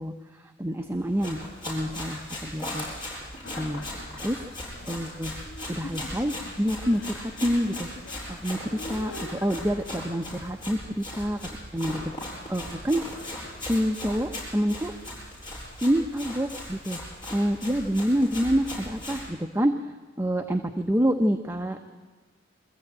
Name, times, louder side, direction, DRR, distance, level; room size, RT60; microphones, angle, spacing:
voice 1, 0.0-2.9 3.6-3.9 4.2-4.5 4.9-5.3 5.7-7.9 8.3-12.1 12.5-13.0 13.6-14.9 15.8-17.0 17.3-19.7 20.2-21.8, equal, 10° right, 4 dB, 0.8 m, -27 dB
Run, 1.0-19.3, left 1 dB, 25° left, 7.4 m, -38 dB
sound 1, 3.4-9.5, left 2 dB, 65° left, 1.0 m, -44 dB
23.5 x 14.5 x 8.8 m, 1.3 s
head